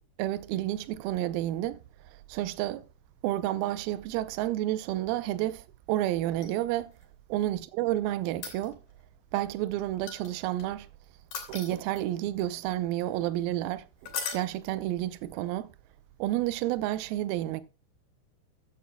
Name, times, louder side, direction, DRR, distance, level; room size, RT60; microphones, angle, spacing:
voice 1, 0.2-1.8 2.3-2.9 3.2-6.9 7.3-8.8 9.3-10.9 11.5-15.7 16.2-17.6, right 14 dB, 80° right, 2.2 m, -30 dB
sound 1, 6.3-7.0 8.3-9.0 10.1-10.6 11.3-12.2 14.0-14.5 16.7-16.8, left 6 dB, 50° left, 3.8 m, -38 dB
14.5 x 10.0 x 2.2 m
omnidirectional pair, 5.0 m